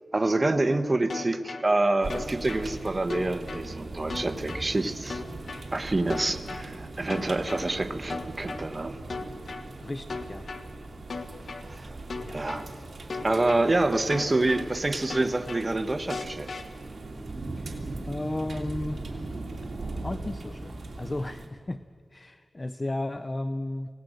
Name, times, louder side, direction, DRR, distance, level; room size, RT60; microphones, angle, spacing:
voice 1, 0.1-5.2 5.7-9.0 11.6-12.0 12.3-12.7 13.2-16.5, right 2 dB, 30° right, 9 dB, 1.1 m, -27 dB
sound 1, 1.1-1.6 2.1-2.6 3.1-3.6 4.1-4.6 5.1-5.6 6.1-6.6 7.1-7.6 8.1-8.6 9.1-9.6 10.1-10.6 11.1-11.6 12.1-12.6 13.1-13.6 14.1-14.6 15.1-15.6 16.1-16.6, left 4 dB, 70° left, 1.4 m, -36 dB
sound 2, 2.0-21.5, right 2 dB, 50° right, 2.9 m, -39 dB
voice 2, 9.8-10.5 12.2-12.4 17.6-17.8 18.1-19.4 20.0-21.8 22.1-23.9, left 1 dB, 30° left, 12 dB, 0.6 m, -34 dB
26.5 x 17.5 x 6.5 m, 2.3 s
wide cardioid pair, 70°, 0 cm